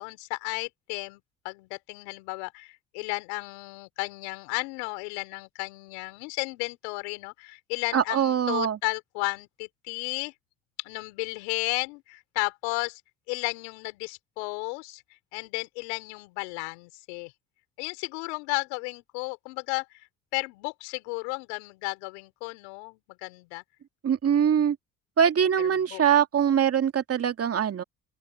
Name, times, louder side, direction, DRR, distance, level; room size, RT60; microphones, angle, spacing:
voice 1, 0.0-10.3 10.8-13.0 13.3-15.0 15.3-17.3 17.8-20.1 20.3-23.6 25.6-26.0, left 31 dB, 80° left, 4.2 m, -34 dB
voice 2, 7.9-8.8 24.0-24.8 25.2-27.8, right 8 dB, 45° right, 2.4 m, -23 dB
open air
hypercardioid pair, 60°, 33 cm